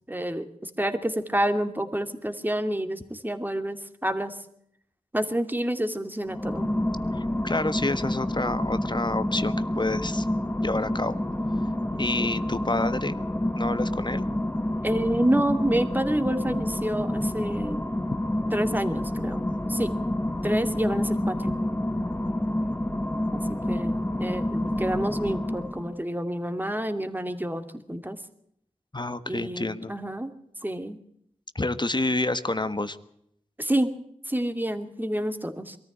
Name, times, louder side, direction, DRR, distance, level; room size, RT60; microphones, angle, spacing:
voice 1, 0.1-4.4 5.1-6.7 11.9-12.3 14.8-17.8 18.5-19.9 20.4-21.6 23.3-28.2 29.3-30.3 30.6-31.0 33.6-33.9 34.3-35.8, right 1 dB, 15° right, 8 dB, 2.6 m, -28 dB
sound 1, 6.2-26.0, left 1 dB, 15° left, 1.1 m, -28 dB
voice 2, 7.2-10.2 10.6-11.1 12.0-13.2 13.5-14.3 28.9-29.9 31.5-33.0, left 2 dB, 35° left, 12 dB, 1.4 m, -28 dB
23.0 x 14.0 x 8.6 m, 0.72 s
cardioid pair, 40°, 14 cm